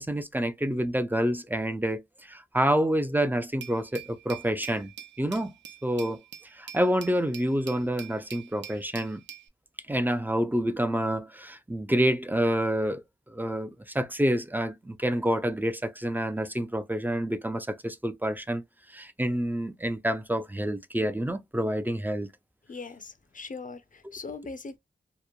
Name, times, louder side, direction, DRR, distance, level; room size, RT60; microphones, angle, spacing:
voice 1, 0.0-2.0 2.3-4.9 5.2-5.5 5.8-6.2 6.5-9.2 9.9-13.0 13.3-18.6 18.9-22.3 24.0-24.1, equal, 10° right, 0.4 m, -28 dB
Glass, 3.6-9.5, right 9 dB, 65° right, 0.5 m, -45 dB
voice 2, 22.7-24.8, left 4 dB, 40° left, 0.5 m, -40 dB
3.0 x 2.1 x 2.2 m
cardioid pair, 60°, 20 cm